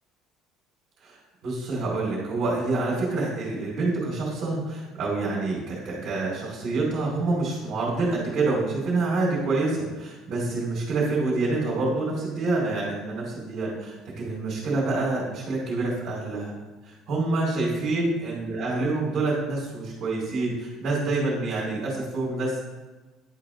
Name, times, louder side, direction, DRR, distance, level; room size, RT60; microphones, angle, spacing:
voice 1, 1.4-16.5 16.8-22.6, right 3 dB, 55° right, -7 dB, 2.4 m, -27 dB
10.5 x 3.9 x 3.9 m, 1.2 s
cardioid pair, 135°, 0 cm